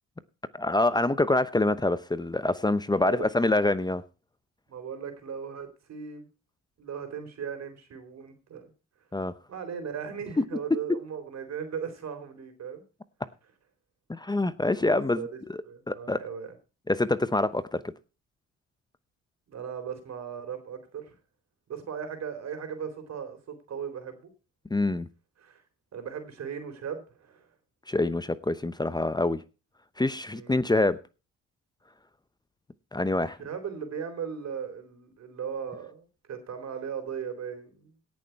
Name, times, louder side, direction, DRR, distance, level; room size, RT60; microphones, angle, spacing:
voice 1, 0.5-4.0 9.1-9.3 10.9-11.0 14.1-15.6 15.9-16.2 16.9-17.9 24.7-25.1 27.9-29.4 30.0-31.0 32.9-33.4, left 2 dB, 15° left, 0.8 m, -26 dB
voice 2, 4.7-6.3 6.8-8.7 9.5-12.8 14.7-15.4 15.6-16.5 19.5-21.2 21.7-24.3 25.4-25.6 25.9-27.5 30.3-30.6 33.1-37.9, right 7 dB, 60° right, 3.9 m, -38 dB
17.5 x 6.9 x 4.6 m
cardioid pair, 90°, 30 cm